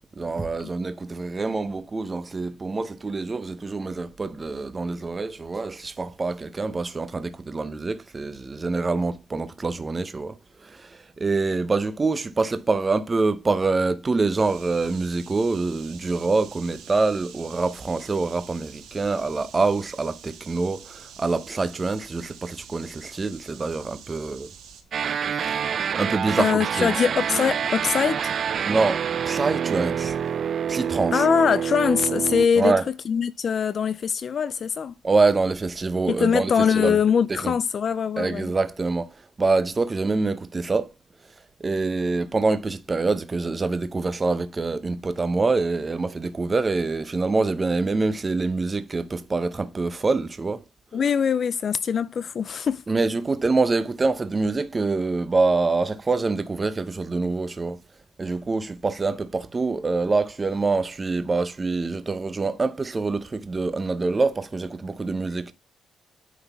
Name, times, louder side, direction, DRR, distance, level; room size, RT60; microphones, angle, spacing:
voice 1, 0.2-10.3 10.6-24.5 25.5-25.7 26.0-26.9 28.7-30.2 30.7-31.2 32.6-32.8 35.0-37.0 37.3-37.5 38.2-39.1 39.4-40.9 41.6-50.6 52.9-57.8 58.2-65.5, right 3 dB, 25° right, 0.7 m, -25 dB
sound 1, 14.3-24.8, right 7 dB, 85° right, 1.7 m, -47 dB
sound 2, 24.9-32.5, right 8 dB, 55° right, 0.3 m, -27 dB
voice 2, 26.4-28.2 31.1-32.7 33.1-34.9 36.1-38.5 50.9-52.8, left 7 dB, 50° left, 0.3 m, -22 dB
9.3 x 3.9 x 3.4 m
cardioid pair, 90°, 0 cm